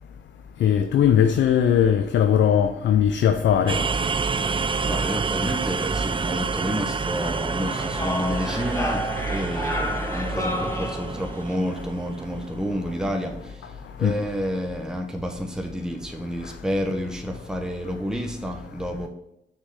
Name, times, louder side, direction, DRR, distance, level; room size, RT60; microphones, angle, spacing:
voice 1, 0.6-3.8 14.0-14.1, left 9 dB, 80° left, 0.4 m, -19 dB
sound 1, 3.7-13.4, right 4 dB, 30° right, 0.4 m, -28 dB
voice 2, 4.9-19.1, equal, 5° right, 1.0 m, -30 dB
sound 2, 6.5-11.5, left 1 dB, 15° left, 1.2 m, -31 dB
6.5 x 3.7 x 5.4 m
supercardioid pair, 45°, 18 cm